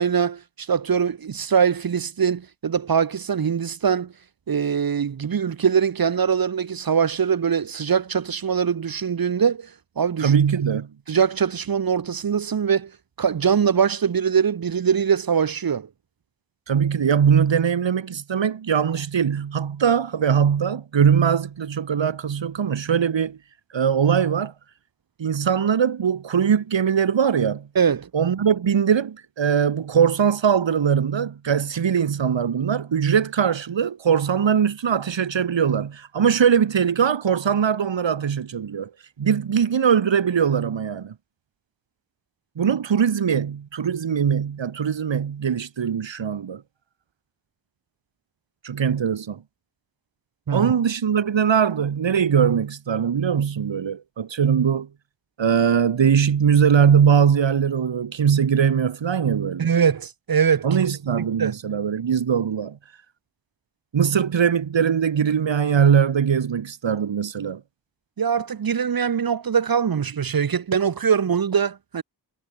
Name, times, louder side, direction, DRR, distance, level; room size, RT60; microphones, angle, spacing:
voice 1, 0.0-4.1 4.5-9.7 10.0-10.4 11.1-12.9 13.2-15.9 27.7-28.1 50.5-50.7 59.6-60.7 61.2-61.5 68.2-72.0, right 7 dB, 55° right, 0.9 m, -22 dB
voice 2, 10.2-10.9 16.7-23.4 23.7-24.5 25.2-27.7 28.1-38.9 39.2-41.1 42.6-46.6 48.6-49.4 50.5-54.9 55.4-59.7 60.6-62.8 63.9-67.6, right 7 dB, 90° right, 1.7 m, -21 dB
wide cardioid pair, 60°, 43 cm